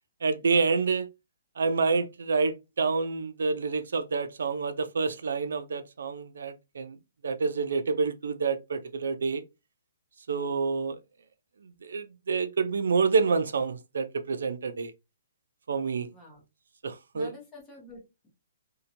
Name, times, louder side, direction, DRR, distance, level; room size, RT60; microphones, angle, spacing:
voice 1, 0.2-1.1 1.6-7.0 7.2-9.4 10.3-11.0 11.8-14.9 15.7-16.1 16.8-17.3, right 4 dB, 70° right, 0.3 m, -28 dB
voice 2, 16.1-16.4 17.1-18.3, left 1 dB, 10° left, 0.7 m, -49 dB
2.7 x 2.1 x 2.6 m
hypercardioid pair, 180°, 0 cm